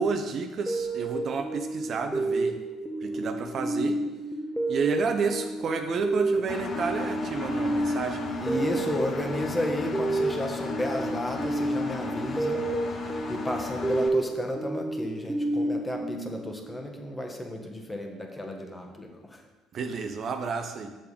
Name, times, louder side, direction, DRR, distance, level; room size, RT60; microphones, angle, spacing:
voice 1, 0.0-2.6 3.0-4.1 4.7-8.2 19.7-21.0, right 5 dB, 50° right, 6 dB, 0.7 m, -30 dB
sound 1, 0.7-17.0, right 2 dB, 5° right, 1.1 m, -30 dB
Engine, 6.5-14.1, left 5 dB, 40° left, 1.1 m, -35 dB
voice 2, 8.4-12.7 13.3-19.4, left 1 dB, 15° left, 3 dB, 1.5 m, -33 dB
6.7 x 6.5 x 5.0 m, 1.1 s
hypercardioid pair, 55°, 0 cm